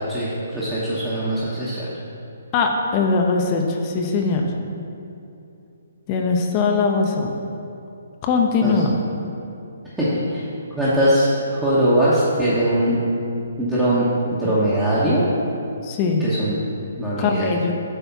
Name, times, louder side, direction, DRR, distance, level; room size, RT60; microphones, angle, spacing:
voice 1, 0.1-1.9 8.6-8.7 10.0-10.4 10.8-13.0 13.6-15.3 16.2-16.6 17.0-17.5, right 1 dB, 10° right, -10 dB, 1.1 m, -21 dB
voice 2, 2.5-4.4 6.1-7.3 8.2-9.0 14.4-14.5 15.8-16.2 17.2-17.7, left 4 dB, 30° left, 2 dB, 0.7 m, -21 dB
8.3 x 3.4 x 5.8 m, 2.7 s
figure-of-eight pair, 135°, 0 cm